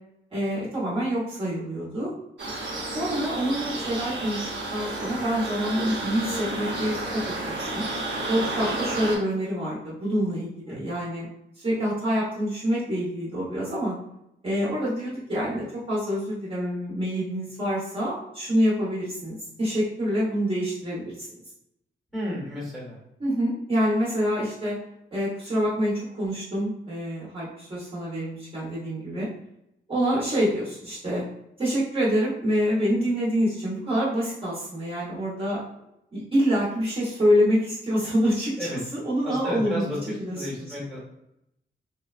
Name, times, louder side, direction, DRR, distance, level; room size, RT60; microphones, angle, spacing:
voice 1, 0.3-2.1 2.9-7.7 8.3-11.3 11.6-14.0 14.4-21.4 23.2-24.8 25.1-29.3 29.9-31.2 31.6-35.6 36.1-39.9 40.2-40.5, equal, 25° right, -9 dB, 1.0 m, -26 dB
sound 1, 2.4-9.2, right 2 dB, 65° right, 0.9 m, -31 dB
voice 2, 22.1-23.0 38.6-38.8 39.2-40.0 40.3-41.0, equal, ahead, -6 dB, 1.2 m, -32 dB
3.7 x 2.1 x 2.4 m, 0.81 s
wide cardioid pair, 175°, 20 cm